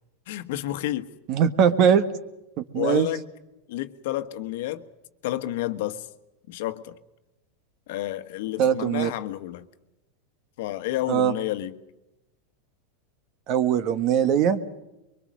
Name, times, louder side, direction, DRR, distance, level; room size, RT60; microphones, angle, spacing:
voice 1, 0.3-1.1 2.7-3.2 3.7-4.8 5.2-6.1 6.5-7.0 7.9-9.7 10.6-11.8, left 14 dB, 65° left, 1.4 m, -30 dB
voice 2, 1.3-2.1 2.6-3.1 8.6-9.1 11.1-11.3 13.5-14.6, right 8 dB, 45° right, 1.6 m, -21 dB
24.0 x 23.5 x 6.5 m
supercardioid pair, 140°, 0 cm